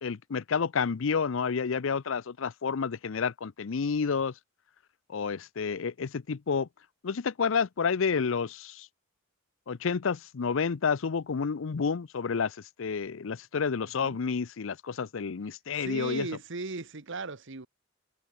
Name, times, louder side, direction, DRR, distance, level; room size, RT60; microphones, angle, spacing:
voice 1, 0.0-4.3 5.1-6.7 7.0-8.9 9.7-16.3, left 5 dB, 70° left, 0.6 m, -30 dB
voice 2, 15.8-17.7, right 3 dB, 65° right, 1.4 m, -37 dB
head